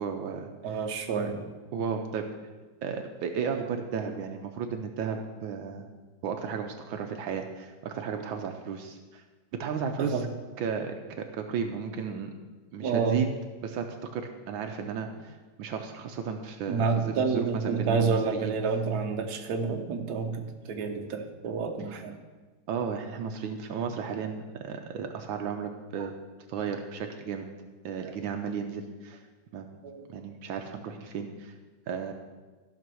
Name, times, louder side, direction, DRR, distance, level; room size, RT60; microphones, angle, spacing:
voice 1, 0.0-0.8 1.7-2.3 2.8-5.8 6.2-9.2 9.5-10.2 10.6-12.3 12.7-13.3 13.6-18.5 22.7-26.1 26.5-27.5 27.8-29.2 29.5-29.7 30.1-31.5 31.9-32.1, right 6 dB, 80° right, 5 dB, 1.5 m, -34 dB
voice 2, 0.6-1.5 10.0-10.2 12.8-13.3 16.7-22.2 26.0-26.1 28.0-28.1 29.8-30.0, right 5 dB, 55° right, 4 dB, 1.4 m, -29 dB
14.0 x 5.0 x 6.2 m, 1.3 s
omnidirectional pair, 2.2 m